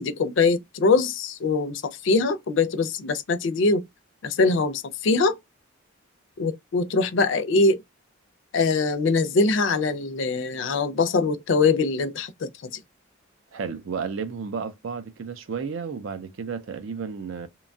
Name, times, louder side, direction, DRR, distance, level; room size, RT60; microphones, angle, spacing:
voice 1, 0.0-3.8 4.2-5.4 6.4-7.8 8.5-12.7, left 3 dB, 60° left, 0.4 m, -23 dB
voice 2, 13.5-17.5, right 5 dB, 70° right, 0.5 m, -32 dB
2.8 x 2.2 x 2.6 m
head